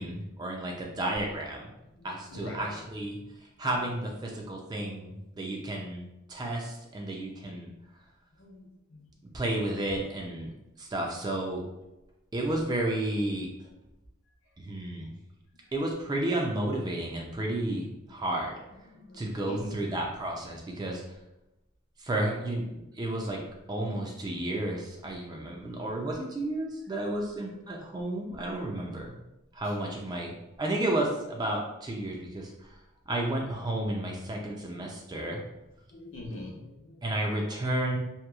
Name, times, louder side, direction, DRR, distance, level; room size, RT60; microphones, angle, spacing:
voice 1, 0.0-1.7 2.0-6.0 6.3-7.7 9.3-10.5 10.8-11.6 12.3-13.7 14.6-15.1 15.7-18.6 19.1-21.2 22.0-23.4 23.7-29.2 29.5-32.8 33.1-35.4 37.0-38.0, right 1 dB, 20° right, 0 dB, 0.3 m, -32 dB
voice 2, 1.8-3.4 3.8-3.9 4.9-5.2 7.1-7.4 8.3-9.6 14.4-14.9 15.6-15.7 18.5-19.9 29.6-30.1 34.4-35.5 35.9-37.3, left 1 dB, 65° left, -1 dB, 0.6 m, -46 dB
2.9 x 2.3 x 2.3 m, 0.94 s
head